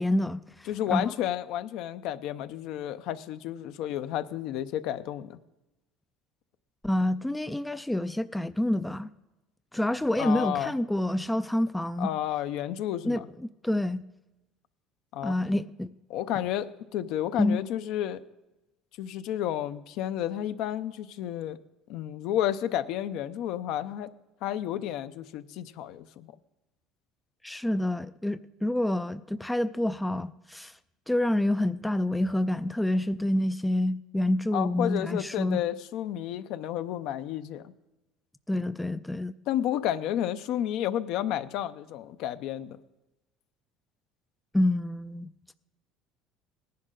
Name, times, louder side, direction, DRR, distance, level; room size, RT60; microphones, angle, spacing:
voice 1, 0.0-1.0 6.8-9.1 9.7-12.1 13.0-13.2 13.6-14.1 15.2-15.9 17.4-17.6 27.4-30.7 31.1-35.6 38.5-39.3 44.5-45.3, left 1 dB, 5° left, 13 dB, 0.3 m, -27 dB
voice 2, 0.7-5.4 10.2-10.7 12.0-13.3 15.1-15.4 16.1-18.2 19.0-21.6 21.9-24.1 24.4-26.3 34.5-37.7 39.5-42.8, left 11 dB, 65° left, 12 dB, 0.6 m, -31 dB
18.5 x 10.5 x 3.8 m, 1.0 s
cardioid pair, 130°, 0 cm